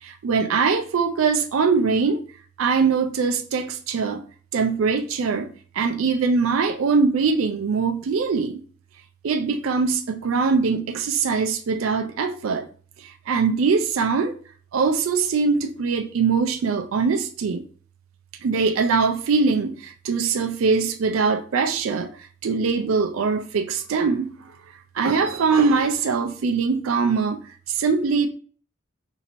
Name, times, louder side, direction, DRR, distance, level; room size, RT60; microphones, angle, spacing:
voice 1, 0.0-2.2 2.6-4.2 4.5-8.6 9.2-12.7 13.0-14.4 14.7-17.7 18.4-24.3 24.9-27.4 27.7-28.3, right 5 dB, 90° right, 0.4 m, -22 dB
5.0 x 2.7 x 2.9 m
head